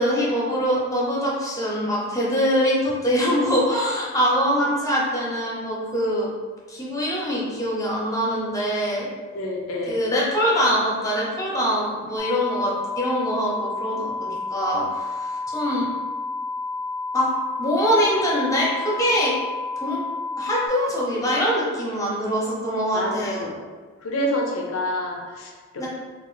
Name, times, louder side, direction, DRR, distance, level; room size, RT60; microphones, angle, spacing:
voice 1, 0.0-6.3 6.7-9.1 9.9-15.9 17.1-17.3 17.6-19.3 19.8-20.0 20.4-23.5 25.8-25.9, equal, 15° left, -5 dB, 0.8 m, -23 dB
voice 2, 9.3-10.0 22.9-23.6 24.0-25.9, left 1 dB, 75° left, 0 dB, 0.6 m, -28 dB
sound 1, 12.2-20.7, left 3 dB, 20° right, 0.6 m, -30 dB
3.0 x 2.5 x 4.0 m, 1.4 s
head